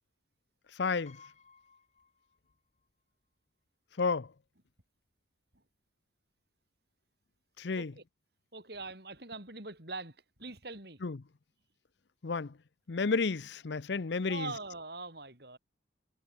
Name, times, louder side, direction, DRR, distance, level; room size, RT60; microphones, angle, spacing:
voice 1, 0.8-1.2 4.0-4.3 7.6-7.9 11.0-11.2 12.2-12.5 12.9-14.5, left 4 dB, 65° left, 0.6 m, -31 dB
Piano, 1.1-2.9 3.2-3.3 4.5-4.6 4.8-5.1, left 5 dB, 35° left, 2.9 m, -60 dB
voice 2, 8.5-11.0 14.3-15.6, right 3 dB, 55° right, 6.2 m, -43 dB
head